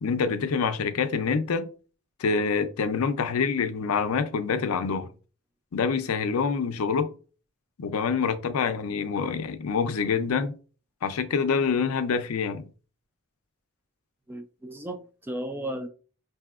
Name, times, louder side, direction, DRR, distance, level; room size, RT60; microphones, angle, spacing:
voice 1, 0.0-1.7 2.2-5.1 5.7-7.1 7.8-10.5 11.0-12.7, left 5 dB, 85° left, 0.5 m, -26 dB
voice 2, 14.3-15.9, right 1 dB, 10° right, 0.3 m, -35 dB
5.5 x 2.6 x 2.4 m
head